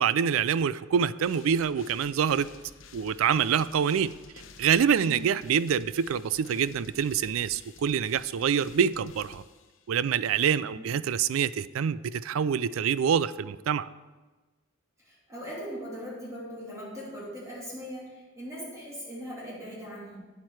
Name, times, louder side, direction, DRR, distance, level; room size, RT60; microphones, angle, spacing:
voice 1, 0.0-2.5 2.9-4.1 4.6-9.4 9.9-13.9, right 7 dB, 80° right, 16 dB, 0.4 m, -26 dB
sound 1, 1.2-10.1, left 5 dB, 70° left, 0.8 m, -52 dB
voice 2, 15.0-20.2, equal, 15° right, -7 dB, 2.7 m, -40 dB
9.6 x 8.6 x 4.7 m, 1.3 s
head